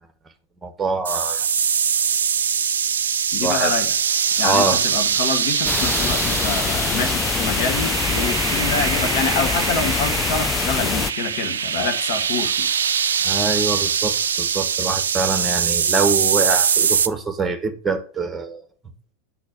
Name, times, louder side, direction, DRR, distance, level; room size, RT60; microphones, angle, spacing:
voice 1, 0.6-1.5 3.4-3.7 4.3-4.8 13.2-18.6, right 3 dB, 10° right, 1.1 m, -24 dB
sound 1, 1.1-17.1, right 7 dB, 65° right, 0.3 m, -22 dB
voice 2, 3.3-3.9 4.4-12.7, left 4 dB, 50° left, 1.4 m, -26 dB
sound 2, 5.6-11.1, left 6 dB, 20° left, 0.4 m, -24 dB
5.8 x 4.6 x 6.0 m
figure-of-eight pair, 90°, 0 cm